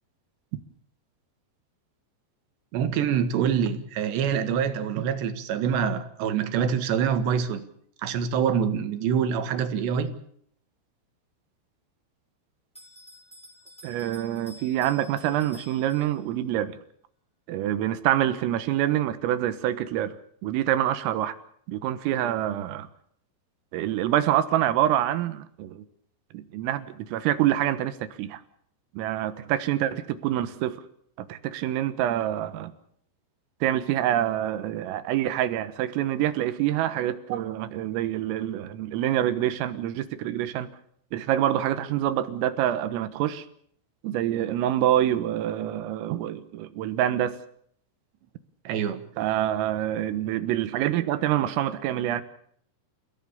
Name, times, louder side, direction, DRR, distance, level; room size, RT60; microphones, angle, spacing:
voice 1, 2.7-7.6 8.0-10.2 48.7-49.1, right 7 dB, 65° right, 9 dB, 3.6 m, -25 dB
Bell, 12.7-16.5, left 1 dB, ahead, 5.8 m, -51 dB
voice 2, 13.8-16.8 17.5-20.2 20.4-21.3 21.7-22.9 23.7-25.8 26.3-28.4 29.0-30.8 31.2-32.7 33.6-40.7 41.1-43.5 44.0-47.4 49.2-52.2, right 12 dB, 90° right, 11 dB, 4.0 m, -26 dB
29.5 x 16.0 x 7.1 m, 0.66 s
omnidirectional pair, 5.8 m